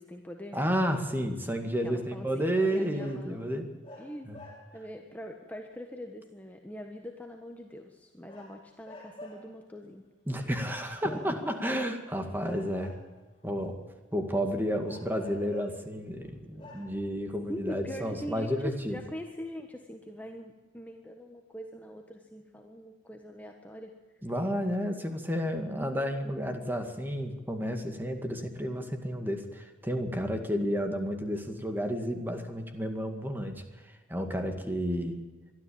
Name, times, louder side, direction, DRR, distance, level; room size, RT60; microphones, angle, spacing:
voice 1, 0.0-0.6 1.8-3.6 4.0-10.0 11.0-11.5 17.5-24.2, equal, 10° left, 3 dB, 1.3 m, -43 dB
voice 2, 0.5-3.7 4.3-4.4 10.3-13.0 13.4-13.8 14.1-19.0 24.2-33.6 34.1-35.2, equal, 10° right, 5 dB, 2.1 m, -31 dB
sound 1, 2.5-3.3 3.8-4.9 8.3-9.5 10.6-11.7 12.4-13.4 14.8-15.9 16.3-16.4 16.6-16.9, left 1 dB, 25° left, 6.0 m, -48 dB
23.0 x 13.0 x 8.8 m, 1.3 s
head